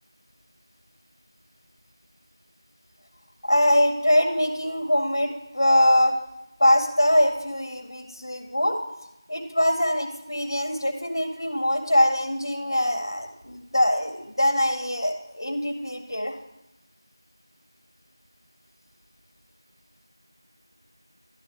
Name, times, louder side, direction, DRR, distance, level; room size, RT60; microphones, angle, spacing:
voice 1, 3.4-6.2 6.6-8.8 9.3-16.4, left 1 dB, 55° left, 5 dB, 1.9 m, -23 dB
12.0 x 12.0 x 3.2 m, 0.91 s
figure-of-eight pair, 180°, 2 cm